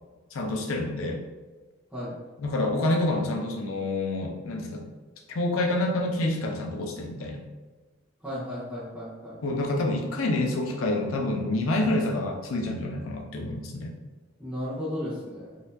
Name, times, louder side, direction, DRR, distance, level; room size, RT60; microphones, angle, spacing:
voice 1, 0.3-1.2 2.4-4.9 5.3-7.4 9.4-13.9, left 2 dB, 90° left, 2 dB, 0.5 m, -27 dB
voice 2, 8.2-9.4 14.4-15.6, left 1 dB, 5° right, -11 dB, 0.7 m, -34 dB
3.9 x 2.6 x 2.6 m, 1.3 s
head